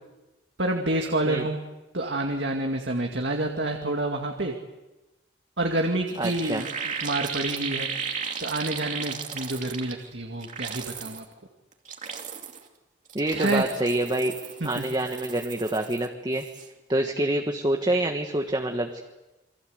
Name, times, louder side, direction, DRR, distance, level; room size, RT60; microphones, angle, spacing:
voice 1, 0.6-1.6 1.9-4.5 5.6-7.9 8.4-11.2 13.3-13.7 14.6-14.8, right 2 dB, 65° right, 2 dB, 2.3 m, -28 dB
sound 1, 5.8-5.9 6.1-10.1 10.4-11.2 11.7-12.7 13.1-16.1 16.3-16.7, right 6 dB, 40° right, 2.8 m, -35 dB
voice 2, 6.2-6.6 13.1-14.4 14.6-16.4 16.9-19.0, right 1 dB, 25° right, 3 dB, 1.5 m, -26 dB
28.5 x 24.0 x 8.1 m, 1.1 s
head